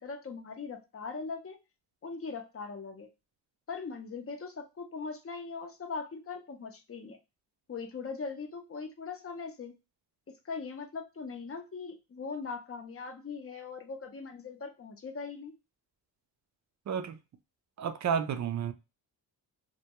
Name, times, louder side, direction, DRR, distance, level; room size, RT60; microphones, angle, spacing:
voice 1, 0.0-1.6 2.0-3.1 3.7-7.2 7.7-9.7 10.3-15.5, left 4 dB, 30° left, 0.6 m, -40 dB
voice 2, 16.9-17.2 17.8-18.7, right 7 dB, 40° right, 0.4 m, -31 dB
2.2 x 2.2 x 2.8 m
cardioid pair, 80°, 45 cm